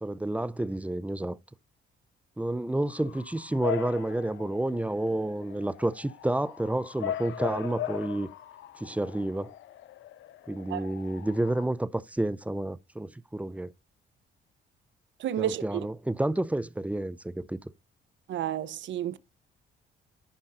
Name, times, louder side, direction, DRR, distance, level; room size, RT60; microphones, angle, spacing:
voice 1, 0.0-1.4 2.4-8.3 8.8-9.5 10.5-13.7 15.4-17.6, right 1 dB, 5° right, 0.5 m, -30 dB
Bark / Motor vehicle (road) / Siren, 2.9-11.6, left 11 dB, 75° left, 0.8 m, -40 dB
voice 2, 15.2-15.6 18.3-19.2, right 10 dB, 70° right, 0.8 m, -31 dB
14.0 x 5.3 x 2.5 m
cardioid pair, 90°, 20 cm